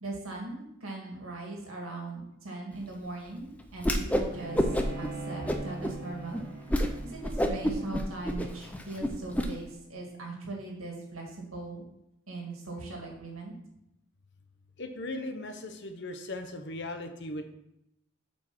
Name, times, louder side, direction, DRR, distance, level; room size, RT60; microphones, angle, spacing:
voice 1, 0.0-6.4 7.0-11.8 12.3-13.5, right 2 dB, 85° right, 0 dB, 2.0 m, -40 dB
Whoosh swoosh swish, 3.8-4.3 4.5-5.1 5.5-5.9 6.3-6.4 6.7-6.9 7.2-9.5, equal, 5° left, 0.5 m, -28 dB
Bowed string instrument, 4.3-9.6, right 2 dB, 55° right, 1.7 m, -42 dB
voice 2, 14.8-17.4, left 2 dB, 55° left, 6 dB, 0.9 m, -38 dB
7.3 x 4.5 x 6.0 m, 0.82 s
head